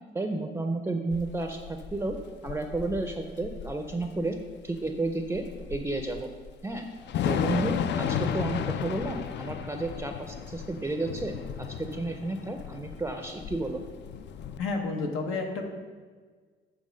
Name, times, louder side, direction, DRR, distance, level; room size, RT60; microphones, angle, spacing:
voice 1, 0.1-2.2 2.4-4.4 4.6-5.4 5.7-6.3 6.6-6.8 7.2-13.8, right 2 dB, 15° right, 5 dB, 0.4 m, -32 dB
Thunder / Rain, 1.1-14.6, left 8 dB, 65° left, 0.4 m, -34 dB
voice 2, 14.6-15.6, left 3 dB, 90° left, 3 dB, 0.9 m, -30 dB
7.5 x 3.4 x 5.1 m, 1.5 s
cardioid pair, 90°, 20 cm